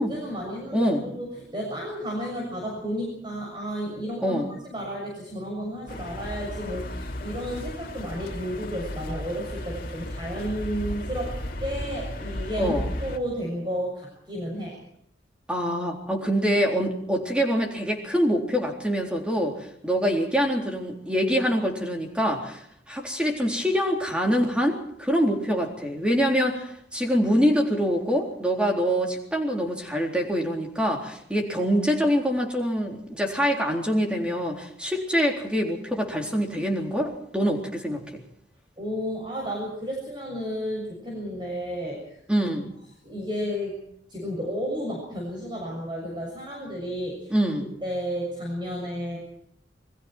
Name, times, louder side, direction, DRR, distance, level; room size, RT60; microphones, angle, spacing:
voice 1, 0.0-14.8 38.8-42.2 43.0-43.7 44.1-47.3 47.8-49.2, equal, 25° right, -2 dB, 7.1 m, -32 dB
voice 2, 0.7-1.1 4.2-4.5 12.6-12.9 15.5-38.2 42.3-42.7 47.3-47.7, equal, 5° right, 0 dB, 3.9 m, -25 dB
sound 1, 5.9-13.2, left 1 dB, 50° left, 2.6 m, -34 dB
29.0 x 23.0 x 4.6 m, 0.69 s
head